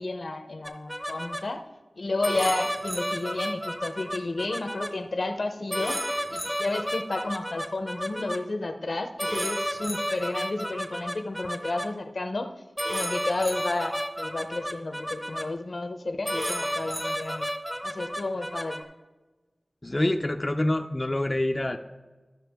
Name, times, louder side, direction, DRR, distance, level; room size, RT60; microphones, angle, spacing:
voice 1, 0.0-1.6 2.0-6.0 6.3-12.5 12.9-17.5 17.8-18.9, left 2 dB, 70° left, 7 dB, 0.7 m, -31 dB
sound 1, 0.6-1.4 2.2-4.9 5.7-8.4 9.2-11.9 12.8-15.4 16.2-18.8, equal, 5° right, 0.8 m, -32 dB
voice 2, 19.8-21.8, left 1 dB, 35° left, 5 dB, 0.4 m, -26 dB
13.5 x 5.8 x 3.5 m, 1.2 s
wide cardioid pair, 55°, 0 cm